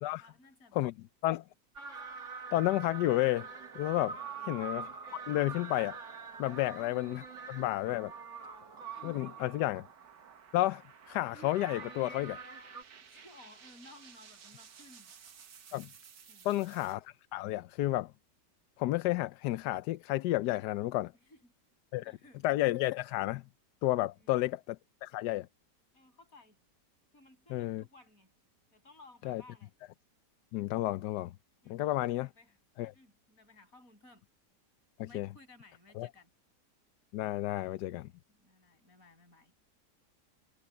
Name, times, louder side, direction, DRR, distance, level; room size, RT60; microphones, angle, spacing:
voice 1, 0.2-0.9 4.2-4.5 8.9-9.7 13.0-15.1 16.3-16.7 21.1-21.5 22.0-22.4 24.2-24.5 25.9-26.6 27.1-28.3 28.7-29.7 31.6-34.2 35.1-36.3 38.3-39.5, left 2 dB, 50° left, 7.9 m, -59 dB
sound 1, 1.8-10.1 11.3-12.8, right 5 dB, 45° right, 2.2 m, -45 dB
sound 2, 2.4-17.0, right 7 dB, 85° right, 2.1 m, -56 dB
voice 2, 2.5-3.5 3.8-4.2 4.4-4.9 5.3-6.0 6.4-7.2 7.5-8.1 9.0-9.8 10.5-12.4 15.7-15.9 16.4-18.1 18.8-21.1 21.9-22.0 22.4-23.4 23.8-24.8 25.0-25.5 27.5-27.8 29.2-29.4 30.5-31.3 31.7-32.3 32.8-32.9 35.0-35.3 36.0-36.1 37.1-38.1, left 16 dB, 80° left, 1.2 m, -31 dB
omnidirectional pair, 1.8 m